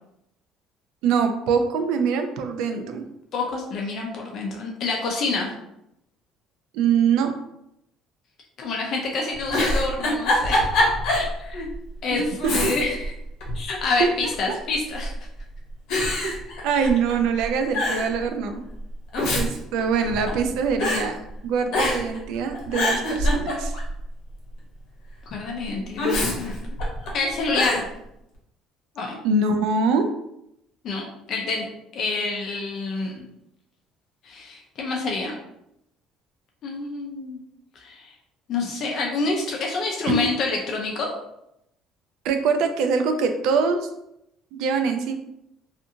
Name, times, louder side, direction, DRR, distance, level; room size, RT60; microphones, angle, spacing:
voice 1, 1.0-3.0 6.7-7.3 12.1-12.7 14.0-14.1 14.5-14.6 16.2-16.3 16.6-18.6 19.3-23.7 29.2-30.1 40.0-40.3 42.2-43.9 44.5-45.1, right 5 dB, 70° right, 6 dB, 0.3 m, -23 dB
voice 2, 3.3-5.5 8.6-10.7 11.1-11.7 12.0-13.1 13.5-15.1 25.3-26.6 27.1-27.9 29.0-29.2 30.8-31.7 31.9-33.3 34.2-35.3 36.6-37.4 37.8-38.1 38.5-41.1, left 3 dB, 40° left, 0 dB, 0.4 m, -27 dB
Giggle, 9.3-11.3 11.7-11.8 12.4-13.1 13.4-14.2 15.0-15.4 15.9-17.1 17.4-17.5 17.7-18.1 18.9-20.5 20.8-21.0 21.7-22.2 22.5-23.9 26.0-27.1 27.5-27.8, left 1 dB, 65° left, 0.8 m, -24 dB
2.5 x 2.4 x 2.7 m, 0.81 s
cardioid pair, 175°, 0 cm